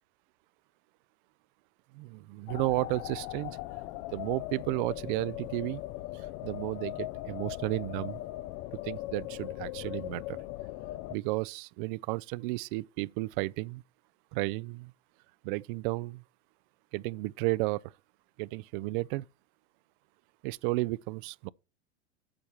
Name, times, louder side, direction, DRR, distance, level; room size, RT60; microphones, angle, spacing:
voice 1, 1.9-3.6 4.1-5.8 6.4-8.2 8.8-10.4 11.1-13.8 14.3-14.9 15.4-16.2 16.9-17.8 18.4-19.2 20.4-21.5, right 21 dB, 50° right, 0.4 m, -33 dB
sound 1, 2.5-11.1, left 17 dB, 40° left, 0.4 m, -39 dB
8.8 x 7.0 x 4.6 m
hypercardioid pair, 105°, 34 cm